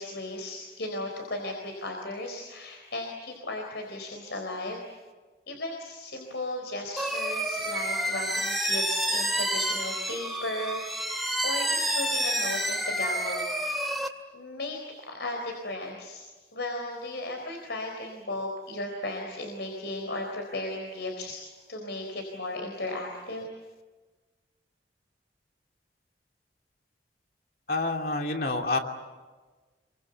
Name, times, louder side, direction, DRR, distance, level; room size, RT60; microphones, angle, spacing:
voice 1, 0.0-4.8 5.5-13.6 14.3-16.2 16.5-23.5, left 2 dB, 80° left, 2 dB, 4.2 m, -36 dB
sound 1, 7.0-14.1, right 1 dB, ahead, 2.1 m, -29 dB
voice 2, 27.7-28.8, left 2 dB, 55° left, 3 dB, 2.8 m, -28 dB
28.0 x 24.0 x 8.1 m, 1.3 s
head